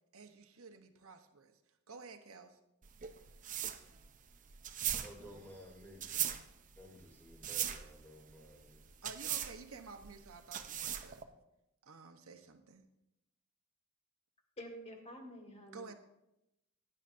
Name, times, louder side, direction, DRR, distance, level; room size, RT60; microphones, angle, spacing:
voice 1, 0.1-1.6 1.9-2.6 9.0-11.2 11.8-12.8 15.7-15.9, right 4 dB, 65° right, 7 dB, 1.0 m, -52 dB
sound 1, 2.8-11.2, right 10 dB, 35° right, 0.6 m, -40 dB
voice 2, 5.0-6.1 6.8-8.8, equal, 10° left, -2 dB, 2.7 m, -54 dB
voice 3, 14.6-15.9, equal, 30° left, 2 dB, 1.8 m, -49 dB
17.5 x 9.7 x 2.6 m, 0.89 s
head